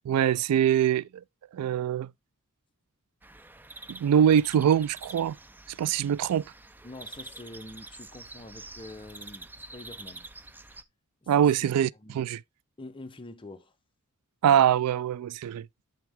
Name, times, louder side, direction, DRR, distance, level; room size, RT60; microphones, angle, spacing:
voice 1, 0.1-1.1 1.5-2.1 3.9-5.4 5.8-6.4 11.3-11.9 12.1-12.4 14.4-15.7, right 9 dB, 80° right, 0.3 m, -23 dB
sound 1, 3.2-10.8, right 2 dB, 10° right, 0.4 m, -47 dB
voice 2, 6.8-10.3 11.2-12.2 12.8-13.7, left 2 dB, 25° left, 0.8 m, -46 dB
7.3 x 5.9 x 3.4 m
head